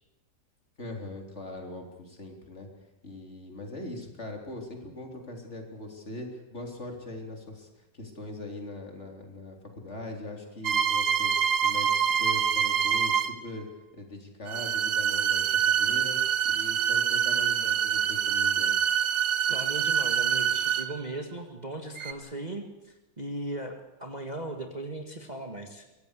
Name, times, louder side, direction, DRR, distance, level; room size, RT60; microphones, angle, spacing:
voice 1, 0.8-2.7 3.0-13.7 13.9-18.8, left 2 dB, 35° left, 2 dB, 3.7 m, -41 dB
sound 1, 10.6-13.5 14.5-21.1 22.0-22.1, right 8 dB, 60° right, 1.6 m, -25 dB
voice 2, 19.5-25.9, right 1 dB, 25° right, 4 dB, 1.9 m, -38 dB
24.5 x 17.5 x 8.2 m, 1.0 s
omnidirectional pair, 2.0 m